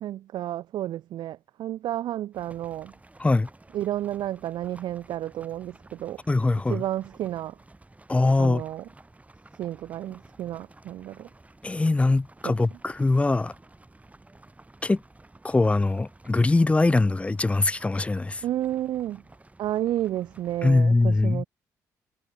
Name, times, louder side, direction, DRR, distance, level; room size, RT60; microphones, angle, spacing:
voice 1, 0.0-2.9 3.7-6.2 6.7-7.6 8.4-8.9 9.6-11.3 12.4-12.5 18.4-19.2 19.6-21.5, right 13 dB, 70° right, 0.7 m, -31 dB
sound 1, 2.3-20.6, right 2 dB, 15° right, 7.2 m, -53 dB
voice 2, 6.3-6.8 8.1-8.6 11.6-13.5 14.8-15.0 15.4-18.4 20.6-21.4, left 2 dB, 15° left, 0.4 m, -22 dB
hypercardioid pair, 55°, 8 cm